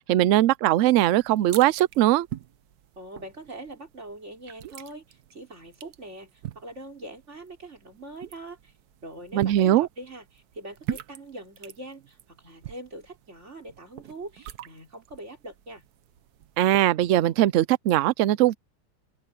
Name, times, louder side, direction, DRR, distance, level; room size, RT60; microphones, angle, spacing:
voice 1, 0.0-2.3 9.3-9.9 16.6-18.5, right 13 dB, 85° right, 0.6 m, -20 dB
sound 1, 0.9-16.9, right 11 dB, 65° right, 1.2 m, -43 dB
voice 2, 3.0-8.7 9.0-15.9, right 1 dB, 40° right, 4.7 m, -42 dB
open air
omnidirectional pair, 1.9 m